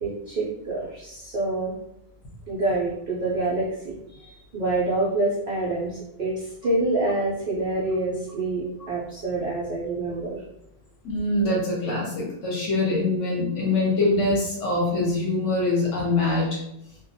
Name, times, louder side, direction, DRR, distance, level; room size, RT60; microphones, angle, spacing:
voice 1, 0.0-1.7 2.5-10.4, right 2 dB, 70° right, -6 dB, 0.5 m, -27 dB
voice 2, 11.0-16.6, left 2 dB, 60° left, -3 dB, 0.9 m, -24 dB
2.4 x 2.2 x 2.6 m, 0.80 s
omnidirectional pair, 1.6 m